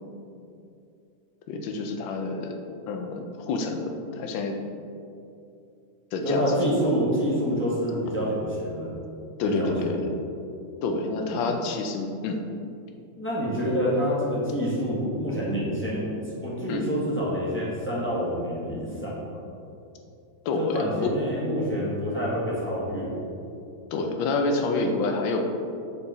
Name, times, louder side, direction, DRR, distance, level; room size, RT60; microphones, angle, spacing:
voice 1, 1.5-2.5 2.9-4.6 6.1-6.6 9.4-10.2 10.8-12.4 16.7-16.9 20.4-21.1 23.9-25.5, left 3 dB, 80° left, 4 dB, 1.4 m, -28 dB
voice 2, 6.2-8.9 9.4-10.0 11.3-11.4 13.2-19.4 20.6-23.1, equal, 10° left, -7 dB, 0.8 m, -27 dB
5.4 x 4.7 x 4.0 m, 2.6 s
omnidirectional pair, 2.1 m